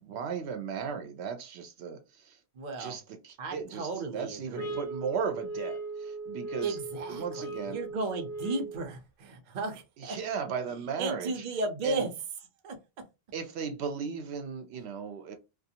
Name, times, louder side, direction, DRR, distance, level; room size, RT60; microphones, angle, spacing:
voice 1, 0.0-2.4 2.8-6.8 7.1-7.8 10.0-11.4 11.8-12.0 13.3-15.4, right 6 dB, 85° right, 0.8 m, -36 dB
voice 2, 2.5-3.0 3.4-4.8 6.6-10.2 11.0-12.1 12.6-12.8, right 3 dB, 50° right, 0.7 m, -34 dB
sound 1, 4.5-8.9, right 3 dB, 65° left, 0.7 m, -38 dB
2.4 x 2.3 x 2.7 m
omnidirectional pair, 1.1 m